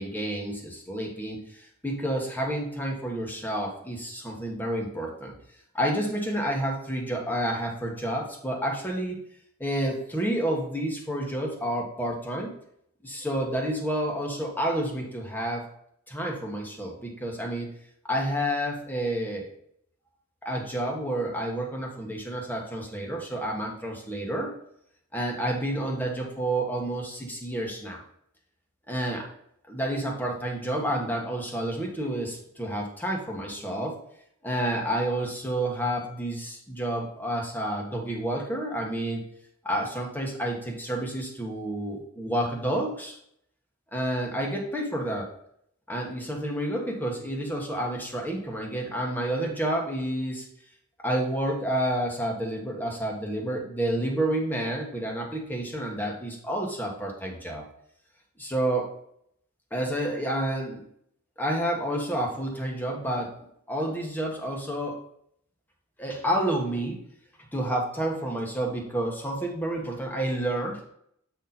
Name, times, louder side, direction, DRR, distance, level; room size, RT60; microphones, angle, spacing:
voice 1, 0.0-5.3 5.7-9.2 9.6-12.5 13.0-15.7 16.1-17.7 18.0-19.5 20.4-24.5 25.1-28.0 28.9-29.3 29.7-34.0 34.4-39.2 39.6-43.2 43.9-45.3 45.9-50.4 51.0-57.6 58.4-58.9 59.7-60.8 61.4-63.3 63.7-65.0 66.0-67.0 67.4-70.9, right 1 dB, 10° left, 0 dB, 1.5 m, -29 dB
8.2 x 4.4 x 4.0 m, 0.70 s
head